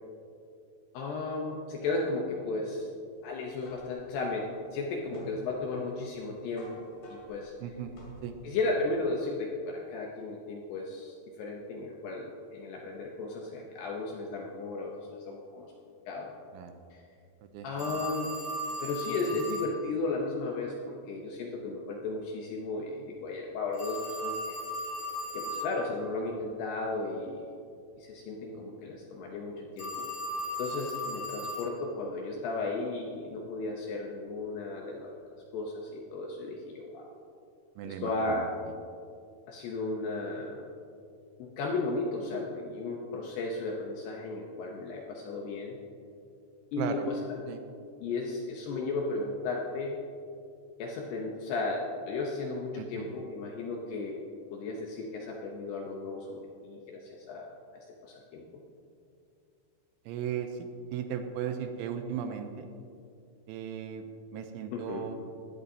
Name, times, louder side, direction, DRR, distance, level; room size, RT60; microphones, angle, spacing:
voice 1, 0.9-2.9 3.2-6.8 7.1-7.5 8.4-15.7 16.1-16.3 16.9-17.0 17.6-18.3 18.8-24.6 25.3-27.5 28.0-30.1 30.6-37.1 37.8-38.5 39.5-40.7 41.4-45.8 46.7-47.2 48.0-50.0 50.8-54.2 54.5-57.5 58.0-58.4 64.7-65.0, left 3 dB, 75° left, -1 dB, 2.4 m, -35 dB
sound 1, 3.2-8.7, equal, 50° left, 4.0 m, -51 dB
voice 2, 7.6-7.9 8.2-8.4 16.5-16.7 17.5-17.7 37.8-38.5 46.8-47.1 47.5-47.6 52.8-53.1 60.1-62.7 63.5-64.1 64.3-65.2, right 8 dB, 85° right, 7 dB, 3.0 m, -36 dB
Telephone, 17.8-19.7 23.7-25.8 29.8-31.8, left 1 dB, 35° left, 1.3 m, -36 dB
16.5 x 11.0 x 2.8 m, 2.5 s
omnidirectional pair, 5.7 m